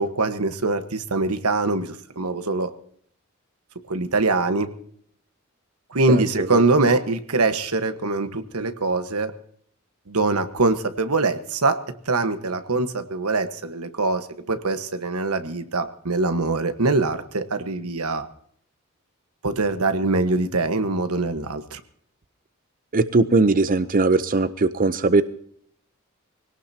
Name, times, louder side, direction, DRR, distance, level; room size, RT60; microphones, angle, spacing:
voice 1, 0.0-2.7 3.9-4.7 5.9-9.3 10.1-11.8 12.1-18.3 19.4-21.8, right 3 dB, 90° right, 9 dB, 1.4 m, -23 dB
voice 2, 6.1-6.6 22.9-25.2, right 3 dB, 40° right, 12 dB, 0.6 m, -20 dB
24.0 x 18.0 x 2.9 m, 0.62 s
head